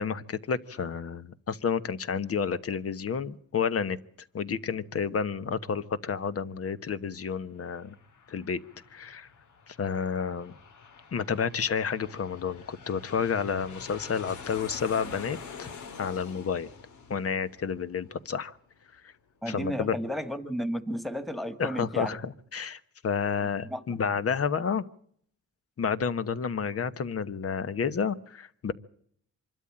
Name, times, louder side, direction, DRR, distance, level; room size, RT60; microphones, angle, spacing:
voice 1, 0.0-4.0 4.3-7.9 8.3-8.6 8.9-9.3 9.7-10.5 11.1-15.7 16.0-16.7 17.1-18.6 19.0-19.1 19.5-20.0 21.6-24.8 25.8-28.7, left 6 dB, 50° left, 13 dB, 1.2 m, -30 dB
Aircraft, 7.5-18.7, left 5 dB, 80° left, 2.4 m, -47 dB
voice 2, 19.4-22.1 23.6-23.8, equal, ahead, 10 dB, 1.8 m, -33 dB
25.5 x 13.0 x 8.7 m, 0.65 s
cardioid pair, 115°, 30 cm